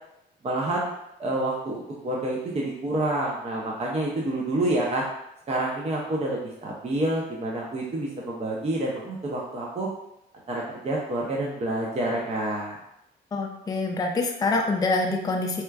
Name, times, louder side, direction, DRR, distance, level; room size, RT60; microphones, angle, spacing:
voice 1, 0.4-0.9 1.2-5.0 5.5-9.9 10.5-12.8, right 1 dB, 30° right, -3 dB, 0.6 m, -28 dB
voice 2, 13.3-15.6, left 3 dB, 20° left, 1 dB, 0.4 m, -25 dB
4.3 x 2.3 x 2.3 m, 0.81 s
cardioid pair, 90°, 20 cm